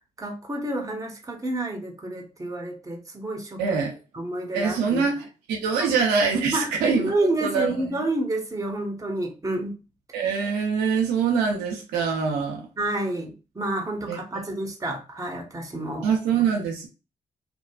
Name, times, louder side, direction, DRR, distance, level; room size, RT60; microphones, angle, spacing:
voice 1, 0.2-3.8 4.1-5.0 5.8-5.9 6.5-9.8 12.8-16.1, right 1 dB, 20° right, 2 dB, 0.9 m, -29 dB
voice 2, 3.6-4.0 4.5-7.1 7.4-8.0 10.1-12.7 14.1-14.2 16.0-16.9, right 5 dB, 80° right, 0 dB, 0.6 m, -24 dB
2.7 x 2.3 x 2.2 m, 0.31 s
hypercardioid pair, 45°, 17 cm